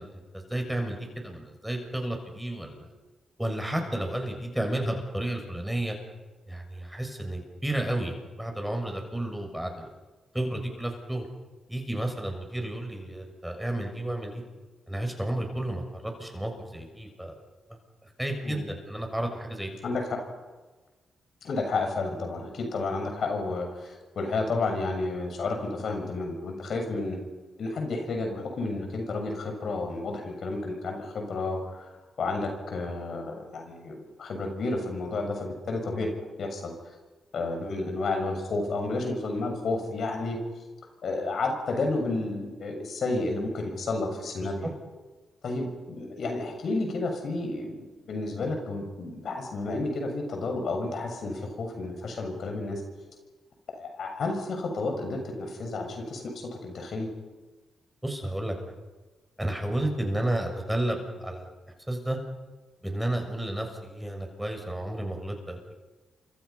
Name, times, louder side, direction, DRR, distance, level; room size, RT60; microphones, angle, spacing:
voice 1, 0.0-2.9 3.4-6.0 6.5-9.9 10.3-11.3 11.7-14.4 14.9-17.4 17.7-19.8 44.4-44.5 58.0-58.5 59.4-61.5 61.9-62.2 62.8-65.8, right 1 dB, 5° right, 3 dB, 6.7 m, -32 dB
voice 2, 19.8-20.2 21.4-27.2 27.6-31.9 32.2-36.1 36.4-36.7 37.3-40.4 41.0-44.7 45.4-47.7 48.1-52.8 53.7-56.3 56.6-57.1, left 3 dB, 70° left, 3 dB, 6.3 m, -31 dB
28.0 x 25.5 x 5.7 m, 1.3 s
cardioid pair, 60°, 0 cm